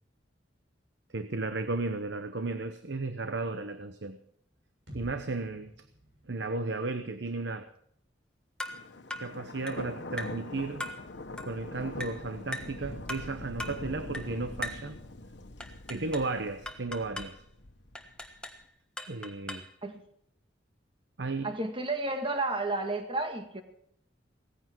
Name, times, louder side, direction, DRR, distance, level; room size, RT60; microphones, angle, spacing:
voice 1, 1.1-4.2 4.9-5.7 6.3-7.7 9.2-10.8 11.4-15.0 15.9-17.4 19.1-19.6 21.2-21.5, right 3 dB, 70° right, 9 dB, 0.9 m, -34 dB
sound 1, 4.9-8.7, equal, 90° right, 7.4 m, -53 dB
sound 2, 8.6-8.8 9.1-9.3 9.7-9.9 10.2-10.4 10.8-11.0 11.4-11.6 12.0-12.2 12.5-12.8 13.1-13.3 13.6-13.8 14.1-14.3 14.6-14.9 15.6-16.3 16.7-17.4 18.0-18.6 19.0-19.7, left 1 dB, 5° left, 1.4 m, -39 dB
Thunder, 8.7-18.5, left 2 dB, 70° left, 1.3 m, -44 dB
voice 2, 21.4-23.6, right 2 dB, 30° right, 5 dB, 2.0 m, -32 dB
18.0 x 15.0 x 4.6 m, 0.68 s
head